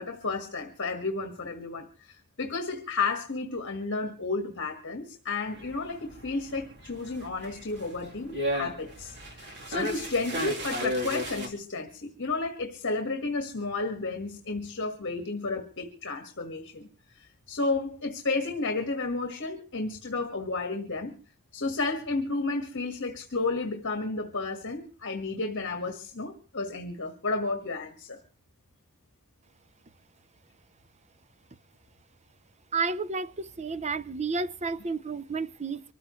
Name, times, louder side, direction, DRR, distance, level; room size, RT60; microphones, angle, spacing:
voice 1, 0.0-16.9 17.1-21.1 21.5-28.2, left 3 dB, 55° left, 1.7 m, -32 dB
sound 1, 5.5-11.5, equal, 55° right, 3.3 m, -34 dB
voice 2, 32.7-35.8, right 4 dB, 30° right, 0.7 m, -31 dB
25.0 x 14.5 x 3.2 m
head